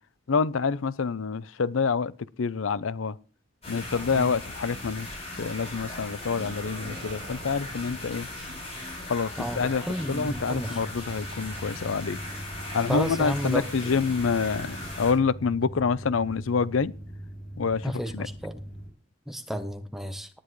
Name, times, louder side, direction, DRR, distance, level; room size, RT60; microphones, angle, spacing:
voice 1, 0.3-2.1 2.4-3.2 3.7-8.3 9.1-9.8 10.1-12.2 12.7-16.9 17.6-18.3, left 5 dB, 85° left, 0.6 m, -27 dB
sound 1, 3.6-15.1, left 1 dB, 30° left, 6.3 m, -38 dB
sound 2, 5.1-13.0, right 1 dB, 45° right, 3.7 m, -50 dB
sound 3, 9.9-18.9, right 1 dB, 45° left, 6.4 m, -41 dB
voice 2, 9.9-10.7 12.9-13.9 17.8-18.6 19.3-20.3, equal, ahead, 0.9 m, -32 dB
18.5 x 10.0 x 3.1 m
head